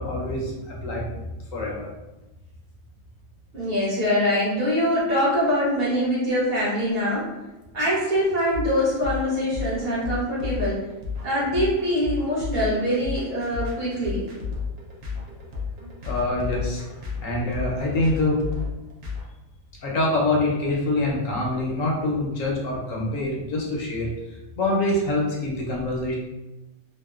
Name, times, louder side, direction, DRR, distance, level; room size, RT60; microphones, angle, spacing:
voice 1, 0.0-1.9 16.0-16.9 17.2-18.5 19.8-24.1 24.6-26.2, left 2 dB, 70° left, -3 dB, 1.0 m, -25 dB
voice 2, 3.5-7.3 7.7-10.8 11.2-14.3, equal, 45° right, -9 dB, 1.0 m, -23 dB
sound 1, 8.5-19.2, left 5 dB, 65° right, 0.7 m, -32 dB
2.8 x 2.1 x 2.3 m, 1.0 s
omnidirectional pair, 1.5 m